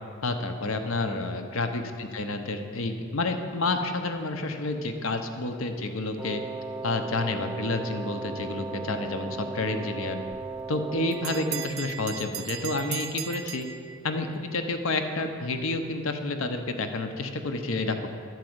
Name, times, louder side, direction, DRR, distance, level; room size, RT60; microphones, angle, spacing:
voice 1, 0.2-6.4 6.8-10.2 10.7-13.7 14.0-18.1, left 2 dB, 75° left, 6 dB, 0.8 m, -29 dB
Wind instrument woodwind instrument, 6.2-11.9, right 3 dB, 10° right, 0.5 m, -37 dB
Bell, 10.3-14.4, right 10 dB, 75° right, 0.5 m, -38 dB
11.5 x 4.8 x 7.9 m, 2.3 s
head